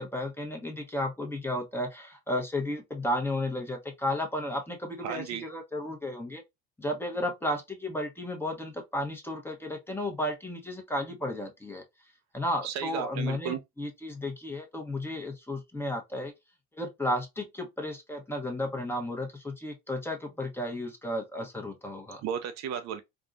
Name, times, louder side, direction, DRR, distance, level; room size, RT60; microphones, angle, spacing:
voice 1, 0.0-6.4 6.8-11.8 12.3-16.3 16.7-22.2, left 1 dB, 5° left, 1.0 m, -33 dB
voice 2, 5.0-5.4 12.6-13.6 22.2-23.0, right 8 dB, 55° right, 0.6 m, -34 dB
3.5 x 2.3 x 2.5 m
hypercardioid pair, 75°, 32 cm